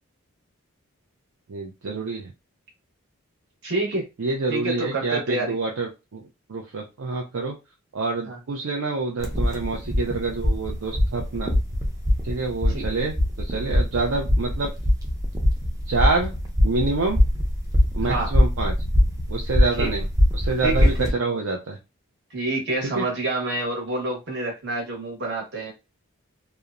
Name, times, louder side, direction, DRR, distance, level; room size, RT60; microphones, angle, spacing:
voice 1, 1.5-2.3 4.2-6.2 6.5-7.5 7.9-11.5 12.2-14.7 15.9-16.3 16.6-17.2 17.9-18.7 19.3-20.0 20.3-21.8 22.9-23.0, right 3 dB, 65° right, 0 dB, 0.5 m, -27 dB
voice 2, 3.6-4.0 4.5-5.5 8.2-8.4 12.7-12.9 18.0-18.3 19.7-19.9 20.6-21.1 22.3-25.7, right 2 dB, 50° right, 0 dB, 1.0 m, -28 dB
sound 1, 9.2-21.1, left 1 dB, 15° right, 0.5 m, -22 dB
2.8 x 2.1 x 2.4 m, 0.26 s
head